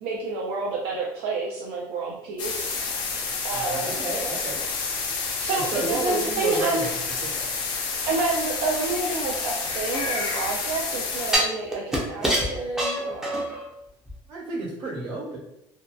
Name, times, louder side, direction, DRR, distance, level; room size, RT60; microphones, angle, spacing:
voice 1, 0.0-2.8 3.4-4.0 5.4-6.9 8.1-13.4, right 3 dB, 75° right, -2 dB, 0.4 m, -29 dB
sound 1, 2.4-11.4, left 4 dB, 50° left, 0.5 m, -29 dB
voice 2, 3.5-4.6 5.5-6.9 7.2-7.5 14.3-15.4, right 3 dB, 55° right, -5 dB, 1.1 m, -31 dB
sound 2, 9.3-10.5 11.3-13.7 14.1-14.2, equal, 5° right, 0.5 m, -26 dB
2.6 x 2.2 x 2.2 m, 0.83 s
cardioid pair, 150°, 10 cm